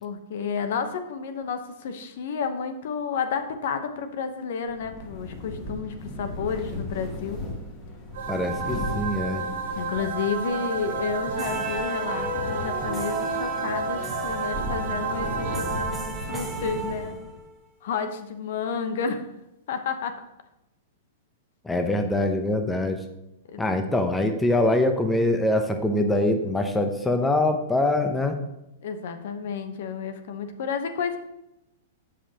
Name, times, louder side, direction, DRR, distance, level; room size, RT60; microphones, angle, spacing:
voice 1, 0.0-7.4 9.8-17.2 17.8-19.2 19.7-20.2 23.5-23.6 28.8-31.2, left 6 dB, 65° left, 8 dB, 1.0 m, -31 dB
sound 1, 4.7-17.4, left 1 dB, 25° left, 2.8 m, -37 dB
sound 2, 8.1-16.4, right 4 dB, 75° right, 1.8 m, -31 dB
voice 2, 8.3-9.5 21.6-23.0 23.6-28.4, left 1 dB, 10° left, 5 dB, 0.8 m, -24 dB
sound 3, 11.3-17.5, right 2 dB, 15° right, 1.1 m, -35 dB
14.0 x 5.1 x 2.9 m, 0.89 s
hypercardioid pair, 135°, 0 cm